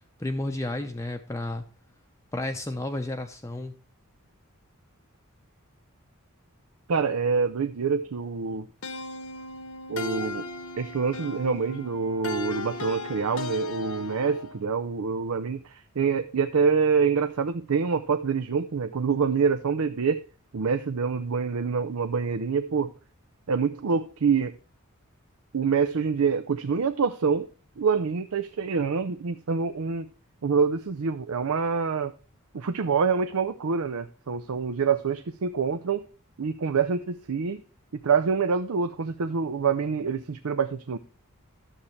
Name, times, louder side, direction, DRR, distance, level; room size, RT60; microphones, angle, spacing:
voice 1, 0.2-1.7 2.3-3.7, left 1 dB, 15° left, 0.7 m, -32 dB
voice 2, 6.9-8.7 9.9-10.5 10.8-20.2 20.5-22.9 23.5-24.5 25.5-27.5 27.8-30.1 30.4-32.2 32.5-36.1 36.4-37.6 37.9-41.0, right 5 dB, 75° right, 0.5 m, -26 dB
sound 1, 8.8-14.6, left 3 dB, 70° left, 1.1 m, -36 dB
12.0 x 7.2 x 3.2 m
head